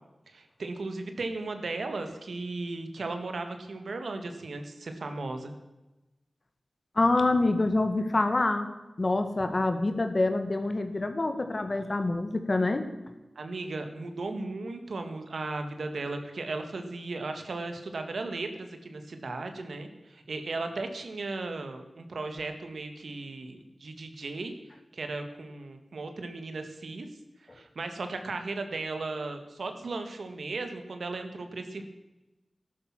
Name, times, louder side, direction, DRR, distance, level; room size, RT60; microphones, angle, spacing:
voice 1, 0.3-5.5 13.4-24.5 24.9-27.1 27.5-31.8, right 3 dB, 85° right, 6 dB, 1.9 m, -36 dB
voice 2, 7.0-8.7 9.0-12.9, left 2 dB, 45° left, 7 dB, 1.8 m, -26 dB
14.0 x 12.0 x 6.1 m, 1.0 s
wide cardioid pair, 65°, 0 cm